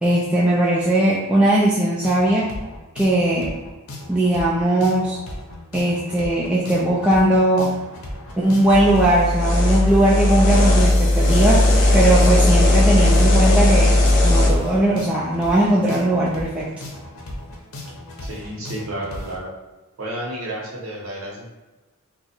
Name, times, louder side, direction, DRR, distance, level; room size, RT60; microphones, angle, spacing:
voice 1, 0.0-2.5 2.9-3.5 4.1-5.2 5.7-7.7 8.4-13.9 14.2-16.7, right 1 dB, 5° right, -7 dB, 0.4 m, -19 dB
sound 1, 2.0-19.4, left 1 dB, 90° left, 0.7 m, -36 dB
sound 2, 8.7-14.5, left 1 dB, 35° left, 0.6 m, -16 dB
voice 2, 18.2-19.5 20.0-21.5, right 1 dB, 80° right, -3 dB, 1.0 m, -31 dB
3.0 x 2.4 x 4.3 m, 1.1 s
head